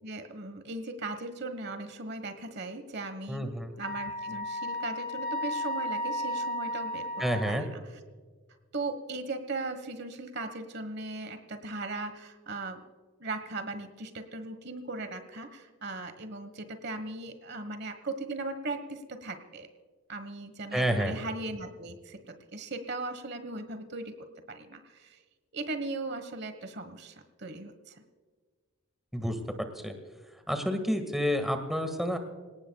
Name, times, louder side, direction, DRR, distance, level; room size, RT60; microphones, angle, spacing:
voice 1, 0.0-3.5 3.8-8.0 8.7-12.8 13.2-19.7 20.1-25.2 25.5-28.0, right 2 dB, 50° right, 9 dB, 1.3 m, -38 dB
voice 2, 3.3-3.7 7.2-7.6 20.7-21.1 29.1-29.3 29.8-29.9 30.5-32.2, equal, ahead, 6 dB, 1.8 m, -29 dB
Wind instrument woodwind instrument, 3.8-7.7, left 1 dB, 40° left, 4.1 m, -34 dB
26.5 x 18.0 x 2.3 m, 1.5 s
head